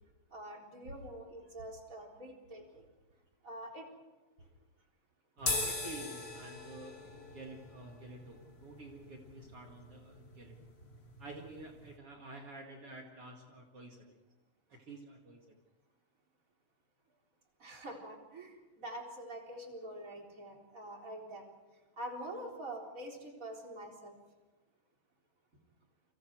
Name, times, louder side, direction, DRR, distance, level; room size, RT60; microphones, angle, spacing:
voice 1, 0.3-2.9 3.4-3.9 17.6-21.4 22.0-24.2, right 1 dB, 25° right, 0 dB, 4.1 m, -45 dB
sound 1, 5.4-12.0, left 3 dB, 30° left, 2.7 m, -41 dB
voice 2, 5.4-10.6 11.2-14.1 14.7-15.4, right 2 dB, 45° right, 1 dB, 3.0 m, -50 dB
29.5 x 25.5 x 4.7 m, 1.1 s
omnidirectional pair, 3.7 m